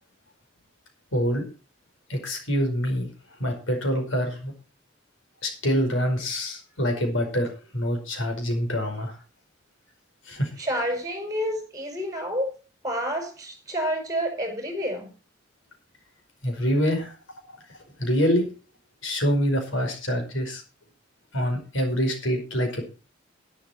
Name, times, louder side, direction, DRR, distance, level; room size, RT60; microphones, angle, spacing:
voice 1, 1.1-1.4 2.1-3.1 3.4-4.5 5.4-7.5 7.7-9.1 10.3-10.5 16.4-17.1 18.0-18.4 19.0-20.6 21.3-22.8, equal, 85° left, 4 dB, 5.1 m, -25 dB
voice 2, 10.6-12.5 12.8-15.1, equal, 20° right, 3 dB, 5.6 m, -29 dB
11.5 x 11.5 x 4.4 m, 0.35 s
head